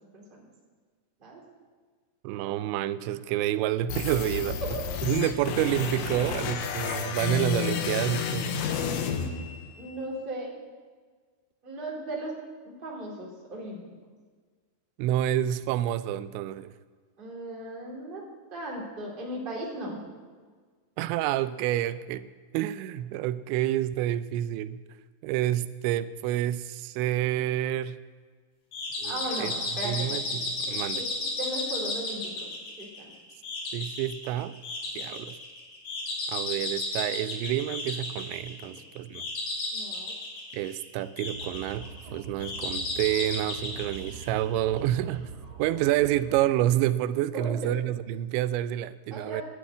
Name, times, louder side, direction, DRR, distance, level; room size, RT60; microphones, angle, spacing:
voice 1, 0.1-0.5 1.2-1.4 4.6-4.8 8.9-9.0 9.8-10.5 11.6-12.4 12.8-13.9 17.2-18.2 18.5-20.0 29.0-30.1 30.6-33.1 35.1-35.2 38.6-38.8 39.7-40.2 47.3-47.7 49.1-49.4, right 1 dB, 15° right, -3 dB, 2.1 m, -37 dB
voice 2, 2.2-4.6 5.0-8.6 15.0-16.7 21.0-22.3 22.5-24.8 25.2-28.0 29.0-29.5 29.9-31.0 33.7-34.6 35.0-35.4 36.3-39.2 40.5-45.3 45.6-49.4, right 13 dB, 90° right, 14 dB, 2.8 m, -28 dB
sound 1, 3.9-9.9, left 7 dB, 85° left, 3.3 m, -31 dB
sound 2, 28.7-44.8, left 2 dB, 50° left, 3.5 m, -34 dB
sound 3, 41.2-46.4, right 5 dB, 45° right, 1.7 m, -44 dB
11.5 x 8.4 x 8.5 m, 1.5 s
omnidirectional pair, 5.1 m